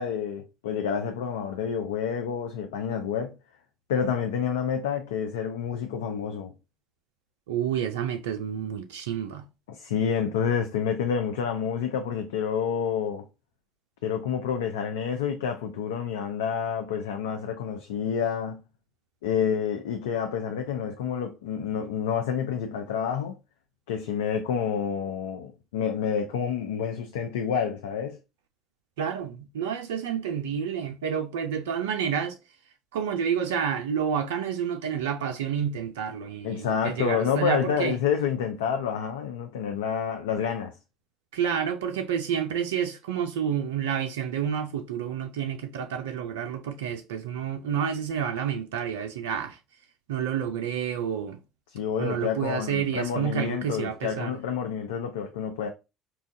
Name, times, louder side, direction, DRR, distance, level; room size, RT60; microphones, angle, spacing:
voice 1, 0.0-3.4 3.9-6.5 9.7-13.3 14.0-18.6 19.2-23.4 23.9-28.2 36.4-40.7 51.7-55.7, left 7 dB, 80° left, 0.4 m, -28 dB
voice 2, 7.5-9.4 29.0-32.4 32.9-38.0 41.3-49.6 50.1-51.4 52.0-54.4, right 8 dB, 80° right, 0.3 m, -29 dB
4.2 x 2.2 x 2.6 m
hypercardioid pair, 60°, 0 cm